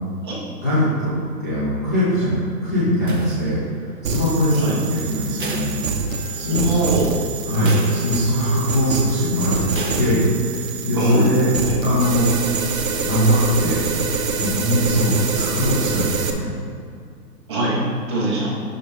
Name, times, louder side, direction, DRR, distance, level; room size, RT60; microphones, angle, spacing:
voice 1, 0.6-1.1 1.4-2.3 2.6-3.6 4.0-5.7 6.3-7.1 7.4-9.5 10.0-12.3 13.0-13.8 14.4-16.5 18.5-18.6, equal, 10° left, -14 dB, 0.6 m, -21 dB
sound 1, 3.1-3.9 5.4-6.5 6.9-7.0 7.7-8.5 9.7-10.5, right 3 dB, 35° right, 0.5 m, -34 dB
sound 2, 4.0-16.3, right 4 dB, 55° right, 1.0 m, -26 dB
sound 3, 6.1-10.9, left 6 dB, 35° left, 1.2 m, -39 dB
voice 2, 6.5-7.1 10.9-11.3 11.6-11.8 17.5-18.5, right 1 dB, 15° right, -6 dB, 0.9 m, -22 dB
11.0 x 3.8 x 5.0 m, 2.4 s
hypercardioid pair, 170°, 49 cm